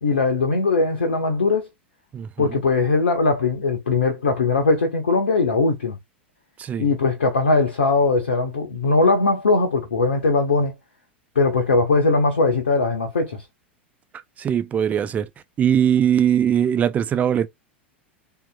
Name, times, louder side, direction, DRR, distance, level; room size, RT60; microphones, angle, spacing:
voice 1, 0.0-1.7 2.4-6.0 6.8-10.7 11.3-13.4, left 3 dB, 70° left, 0.8 m, -20 dB
voice 2, 2.1-2.6 6.6-6.9 14.1-15.3 15.6-17.5, right 9 dB, 25° right, 0.4 m, -21 dB
3.5 x 2.8 x 2.3 m
figure-of-eight pair, 85°, 6 cm